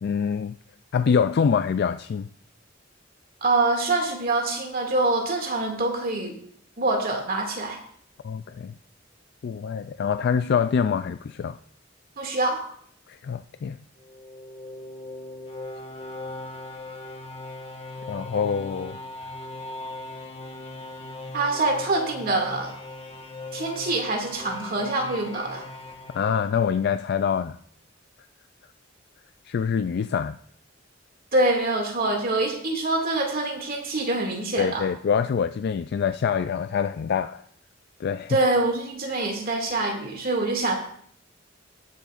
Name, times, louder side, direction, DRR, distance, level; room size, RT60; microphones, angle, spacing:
voice 1, 0.0-0.6 0.9-2.3 8.2-8.7 9.4-11.6 13.1-13.8 18.1-19.0 26.1-27.6 29.4-30.4 34.6-37.4 38.0-38.4, left 6 dB, 55° left, 10 dB, 0.3 m, -25 dB
voice 2, 3.4-6.4 6.8-7.8 12.2-12.7 21.3-22.7 23.5-25.6 31.3-34.9 38.3-40.7, right 2 dB, 50° right, 1 dB, 2.2 m, -25 dB
sound 1, 14.0-27.0, left 2 dB, 30° left, 1.4 m, -39 dB
19.0 x 7.7 x 2.5 m, 0.63 s
head